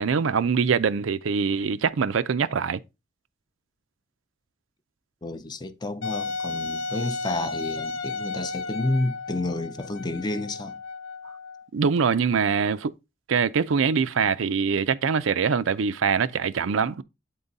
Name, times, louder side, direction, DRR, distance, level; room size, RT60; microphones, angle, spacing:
voice 1, 0.0-2.8 11.7-12.9 13.3-17.0, right 6 dB, 85° right, 0.5 m, -23 dB
voice 2, 5.2-10.8, left 2 dB, 20° left, 0.6 m, -30 dB
Wind instrument woodwind instrument, 6.0-11.7, left 3 dB, 80° left, 0.7 m, -33 dB
8.7 x 3.8 x 4.0 m
head